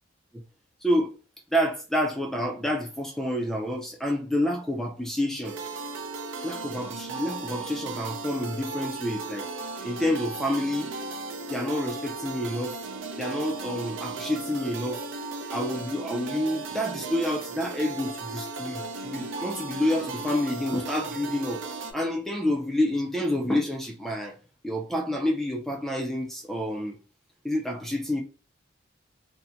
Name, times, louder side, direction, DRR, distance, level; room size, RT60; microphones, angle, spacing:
voice 1, 0.8-1.1 1.5-5.6 6.4-9.5 9.8-10.9 11.5-12.8 13.1-15.0 15.5-21.6 21.9-24.4 24.6-27.0 27.4-28.2, left 1 dB, ahead, 0.3 m, -28 dB
sound 1, 5.4-21.9, right 3 dB, 75° right, 0.5 m, -36 dB
2.7 x 2.1 x 2.4 m
head